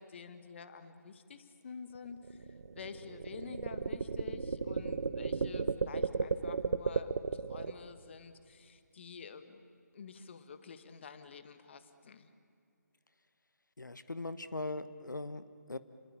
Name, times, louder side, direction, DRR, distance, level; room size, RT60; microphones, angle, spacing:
voice 1, 0.0-9.6 9.9-12.3, left 6 dB, 40° left, 10 dB, 1.7 m, -49 dB
sound 1, 2.0-7.7, right 5 dB, 55° right, 1.1 m, -34 dB
voice 2, 13.8-15.8, left 2 dB, 90° left, 12 dB, 1.3 m, -40 dB
30.0 x 21.0 x 8.8 m, 2.4 s
figure-of-eight pair, 155°, 10 cm